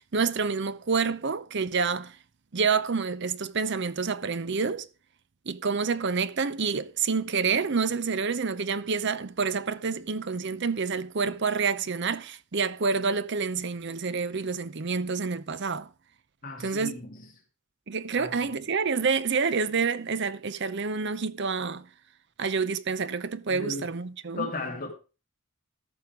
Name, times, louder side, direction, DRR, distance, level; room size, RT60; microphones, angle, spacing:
voice 1, 0.0-2.1 2.5-4.9 5.5-15.9 16.6-17.0 17.9-21.9 22.4-24.5, right 5 dB, 50° right, 0.6 m, -28 dB
voice 2, 16.4-17.3 18.2-18.6 23.5-23.9 24.4-24.9, left 3 dB, 35° left, 2.6 m, -36 dB
13.5 x 5.6 x 4.8 m
head